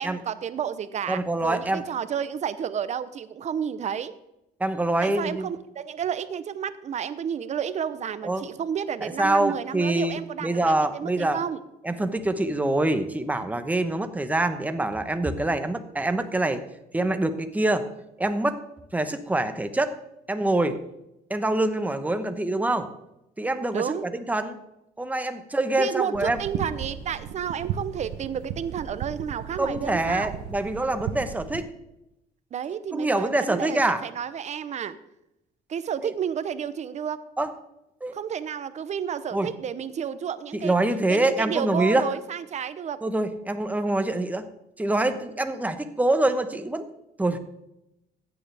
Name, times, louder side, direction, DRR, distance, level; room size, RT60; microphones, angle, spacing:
voice 1, 0.0-4.1 5.0-11.6 23.7-24.0 25.8-30.3 32.5-35.0 35.7-37.2 38.1-40.7 41.1-43.0, right 8 dB, 45° right, 14 dB, 0.8 m, -31 dB
voice 2, 1.1-1.8 4.6-5.5 8.2-8.4 9.0-11.4 11.8-16.6 16.9-17.9 18.2-18.6 18.9-20.0 20.3-20.8 21.3-22.9 23.4-24.6 25.0-26.4 29.6-31.7 32.9-34.0 36.0-36.1 37.4-37.5 38.0-38.1 39.3-39.5 40.5-42.0 43.0-44.4 44.8-46.9 47.2-47.4, right 2 dB, 10° right, 8 dB, 1.0 m, -25 dB
sound 1, 26.1-31.6, right 9 dB, 90° right, 0.9 m, -35 dB
15.0 x 9.3 x 3.4 m, 0.88 s
cardioid pair, 110°, 17 cm